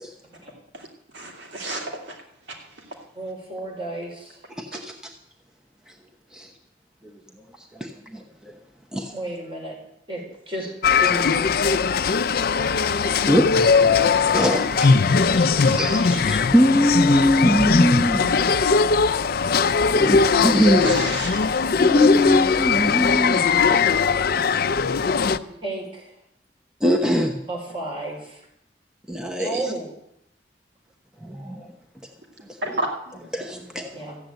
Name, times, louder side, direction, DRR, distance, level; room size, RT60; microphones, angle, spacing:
voice 1, 1.1-1.9 15.6-15.7 16.1-16.2 20.8-21.4 22.6-22.7 29.4-29.6 32.6-32.9, right 1 dB, 90° right, 1 dB, 2.7 m, -30 dB
voice 2, 3.2-4.4 9.1-9.8 10.1-11.9 25.2-26.1 27.5-28.4 29.4-29.9 33.9-34.2, right 1 dB, 30° right, -1 dB, 5.4 m, -33 dB
voice 3, 4.6-4.9 6.3-6.5 7.0-7.1 7.7-8.2 8.9-9.1 13.3-13.9 14.3-18.4 19.9-20.9 21.8-23.6 26.8-27.4 29.1-29.7 31.2-31.7 32.6-32.8 33.3-33.9, equal, 5° right, 2 dB, 1.0 m, -22 dB
sound 1, 10.8-25.4, left 5 dB, 60° left, 0.5 m, -19 dB
14.5 x 8.0 x 9.0 m, 0.77 s
head